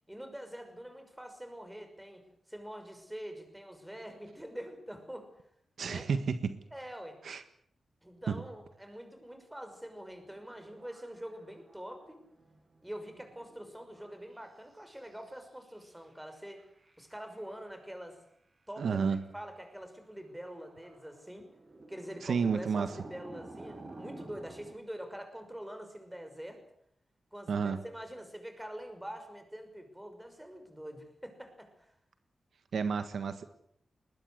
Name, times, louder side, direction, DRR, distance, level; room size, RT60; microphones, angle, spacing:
voice 1, 0.1-2.2 2.5-5.3 5.8-6.0 6.7-7.2 8.0-12.2 12.8-16.6 17.0-18.2 18.7-21.5 21.9-26.6 27.3-31.9, equal, 5° right, 7 dB, 5.9 m, -45 dB
voice 2, 5.8-6.6 7.2-7.4 8.3-8.4 18.8-19.2 22.2-22.9 27.5-27.8 32.7-33.5, right 5 dB, 75° right, 10 dB, 1.6 m, -31 dB
sound 1, 10.4-14.4 14.7-17.7 19.1-19.2 20.2-24.7, right 2 dB, 35° right, 5.3 m, -52 dB
21.0 x 20.0 x 8.3 m, 0.71 s
wide cardioid pair, 95°, 0 cm